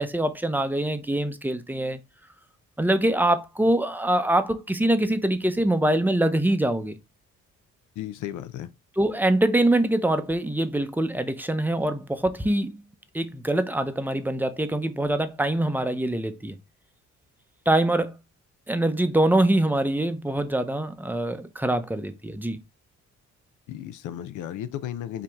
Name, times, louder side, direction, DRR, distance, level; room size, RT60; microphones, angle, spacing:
voice 1, 0.0-2.0 2.8-7.0 9.0-12.8 13.1-16.5 17.7-18.1 18.7-22.6, right 1 dB, 5° right, 0.7 m, -24 dB
voice 2, 8.0-8.7 23.7-25.2, left 11 dB, 80° left, 0.6 m, -34 dB
4.9 x 2.9 x 3.5 m
cardioid pair, 90°, 30 cm